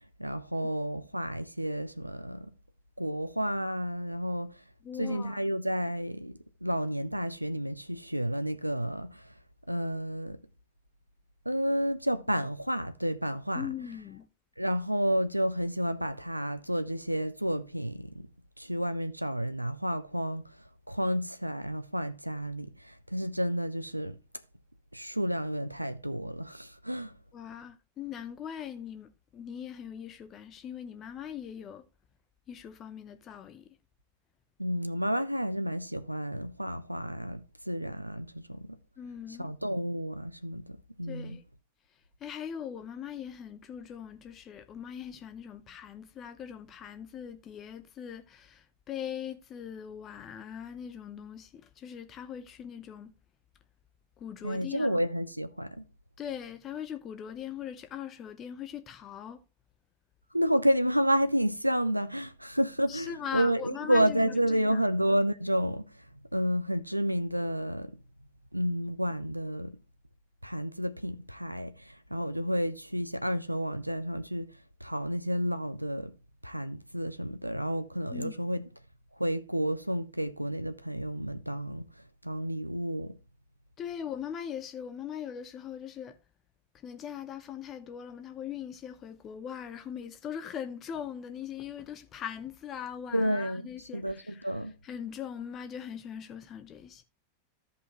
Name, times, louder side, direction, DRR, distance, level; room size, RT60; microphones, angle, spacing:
voice 1, 0.2-2.5 3.0-4.6 5.0-9.3 9.7-10.4 11.5-13.7 14.6-18.3 18.6-24.2 24.9-27.1 34.6-38.8 39.4-41.4 54.4-55.8 60.3-66.1 66.3-68.0 68.5-69.8 70.4-74.5 74.8-76.2 76.4-78.6 79.2-81.9 82.2-83.2 93.1-93.6 93.9-94.7, equal, 90° right, 0.4 m, -31 dB
voice 2, 4.8-5.4 13.5-14.3 27.3-31.9 32.5-33.8 39.0-39.5 41.1-41.4 41.9-53.1 54.2-55.0 56.2-59.4 62.9-64.8 78.1-78.3 83.8-86.2 86.7-97.0, left 8 dB, 30° left, 0.8 m, -41 dB
14.0 x 5.5 x 3.0 m
figure-of-eight pair, 90°, 0 cm